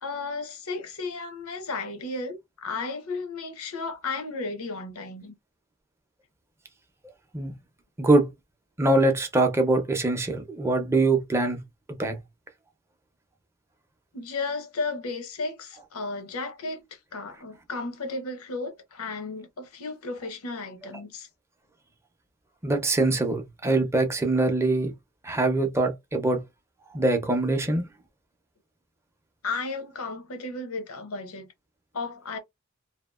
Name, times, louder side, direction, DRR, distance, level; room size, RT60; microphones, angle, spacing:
voice 1, 0.0-5.3 14.1-21.3 29.4-31.5 31.9-32.4, left 3 dB, 90° left, 0.8 m, -34 dB
voice 2, 8.0-8.3 8.8-11.6 11.9-12.2 22.6-24.9 25.2-26.4 26.9-27.9, right 2 dB, 10° right, 0.5 m, -23 dB
2.8 x 2.3 x 2.3 m
head